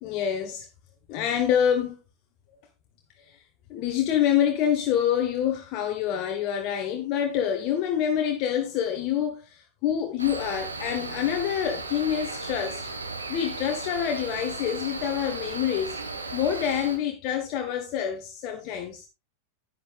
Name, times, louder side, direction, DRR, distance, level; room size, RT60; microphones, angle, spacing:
voice 1, 0.0-0.7 1.1-2.0 3.2-3.4 3.7-12.9 13.3-16.0 16.3-19.1, left 9 dB, 40° left, 1.4 m, -26 dB
Cricket, 10.2-17.0, right 3 dB, 75° right, 1.6 m, -36 dB
11.0 x 9.3 x 2.5 m
figure-of-eight pair, 90°, 0 cm